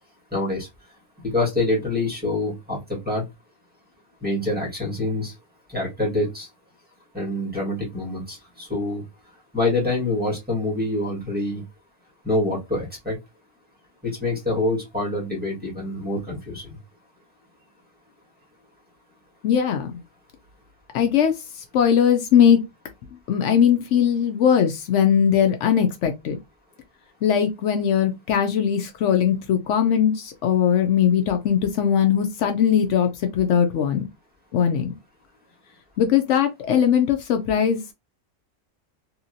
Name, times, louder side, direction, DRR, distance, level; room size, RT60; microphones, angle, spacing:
voice 1, 0.3-0.7 1.2-3.2 4.2-5.3 5.7-6.5 7.1-9.0 9.5-11.6 12.2-13.2 14.0-16.6, left 2 dB, 10° right, 1.4 m, -26 dB
voice 2, 19.4-19.9 20.9-21.3 21.7-22.6 23.3-26.4 27.2-34.1 34.5-34.9 36.0-37.8, left 8 dB, 75° left, 0.9 m, -20 dB
2.9 x 2.7 x 2.6 m
omnidirectional pair, 1.3 m